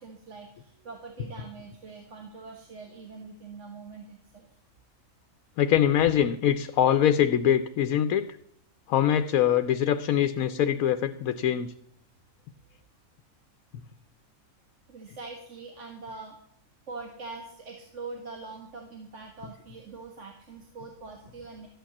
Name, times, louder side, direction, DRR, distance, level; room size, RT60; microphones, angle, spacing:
voice 1, 0.0-4.5 14.9-16.4 16.9-21.7, right 4 dB, 60° right, 1 dB, 1.9 m, -43 dB
voice 2, 5.6-8.2 8.9-11.7, left 10 dB, 85° left, 10 dB, 1.1 m, -23 dB
13.5 x 9.1 x 7.2 m, 0.69 s
omnidirectional pair, 1.4 m